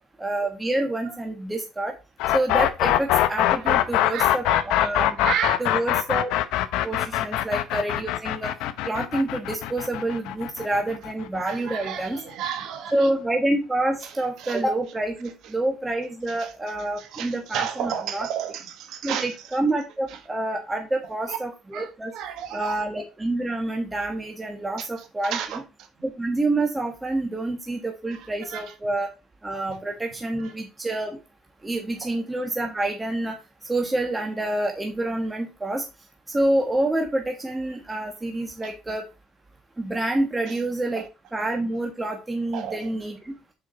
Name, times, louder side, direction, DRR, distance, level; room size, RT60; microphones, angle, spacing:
voice 1, 0.2-1.9 2.3-5.2 5.6-6.3 6.8-8.5 8.9-12.2 12.9-18.3 19.0-22.1 22.5-25.4 26.0-29.1 29.4-31.2 31.6-33.4 33.7-35.8 36.3-39.0 39.8-41.0 41.3-43.3, right 2 dB, 15° right, 1.4 m, -27 dB
sound 1, 2.2-12.0, left 13 dB, 80° left, 0.6 m, -23 dB
voice 2, 3.6-4.9 5.2-5.6 7.2-7.3 11.4-13.1 14.0-14.1 14.4-14.6 16.3-16.5 17.0-19.3 20.1-20.2 21.3-21.4 21.7-22.8 25.2-25.6 28.1-28.7 29.7-29.8 32.0-32.1 38.6-38.7 40.5-40.6 41.0-41.1 42.5-42.9, right 9 dB, 70° right, 1.4 m, -33 dB
6.5 x 5.0 x 3.9 m
supercardioid pair, 90°, 0 cm